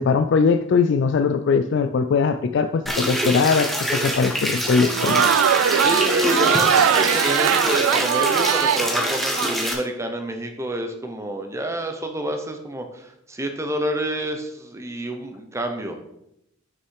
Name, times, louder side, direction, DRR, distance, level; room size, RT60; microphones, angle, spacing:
voice 1, 0.0-5.3, left 5 dB, 60° left, 9 dB, 0.3 m, -20 dB
sound 1, 2.9-9.7, equal, ahead, 1.1 m, -25 dB
Crowd, 4.7-9.5, right 8 dB, 85° right, 0.4 m, -20 dB
voice 2, 5.8-16.1, right 1 dB, 15° right, 5 dB, 0.8 m, -28 dB
6.3 x 6.2 x 4.7 m, 0.80 s
head